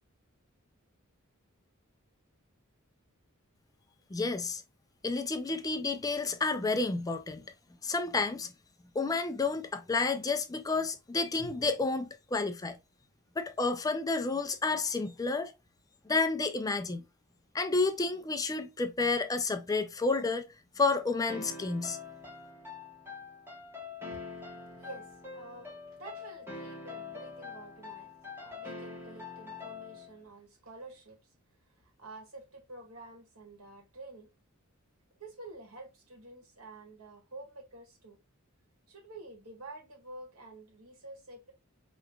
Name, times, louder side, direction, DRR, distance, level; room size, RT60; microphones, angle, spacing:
voice 1, 4.1-4.6 5.0-7.4 7.8-8.5 9.0-12.8 13.4-15.5 16.1-17.0 17.5-20.5 20.8-22.0, left 3 dB, 15° left, 0.4 m, -30 dB
sound 1, 21.3-30.2, left 4 dB, 10° right, 1.3 m, -44 dB
voice 2, 23.9-28.1 28.4-34.3 35.1-38.2 38.9-41.5, right 2 dB, 80° right, 1.9 m, -49 dB
4.8 x 3.1 x 2.2 m
head